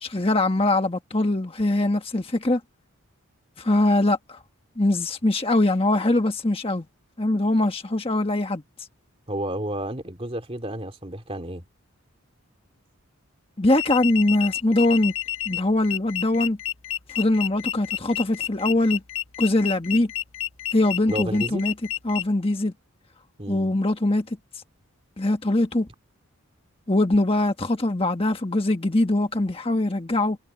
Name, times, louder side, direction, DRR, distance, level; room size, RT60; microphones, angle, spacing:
voice 1, 0.0-2.6 3.6-4.4 4.8-6.8 7.2-8.6 13.6-15.1 15.4-16.6 17.1-19.0 19.4-20.1 20.7-21.7 22.0-22.7 23.5-24.4 25.2-25.9 26.9-30.4, left 2 dB, 25° left, 1.4 m, -22 dB
voice 2, 9.3-11.7 21.1-21.7 23.4-23.7, right 1 dB, 25° right, 2.5 m, -31 dB
sound 1, 13.7-22.2, left 11 dB, 65° left, 1.4 m, -30 dB
head